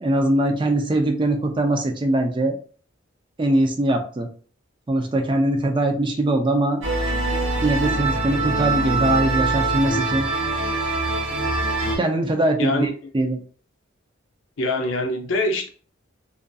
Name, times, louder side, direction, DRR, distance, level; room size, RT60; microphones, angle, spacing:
voice 1, 0.0-2.6 3.4-4.3 4.9-6.8 7.6-10.3 12.0-13.4, right 1 dB, 25° right, 0.4 m, -21 dB
sound 1, 6.8-12.0, right 2 dB, 65° right, 0.9 m, -23 dB
voice 2, 12.6-12.9 14.6-15.7, left 2 dB, 75° left, 0.5 m, -23 dB
2.5 x 2.5 x 2.2 m
head